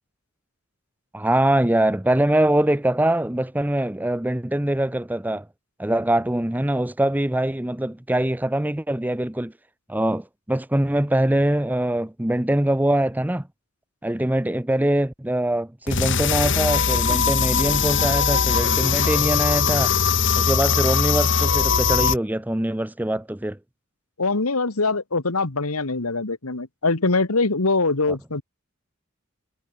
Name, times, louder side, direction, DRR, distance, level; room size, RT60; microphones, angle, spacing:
voice 1, 1.1-5.5 5.8-9.5 9.9-13.5 14.0-20.0 20.4-23.6, right 1 dB, 10° right, 0.7 m, -23 dB
sound 1, 15.9-22.2, left 6 dB, 60° left, 2.4 m, -20 dB
voice 2, 24.2-28.4, left 3 dB, 85° left, 1.8 m, -23 dB
head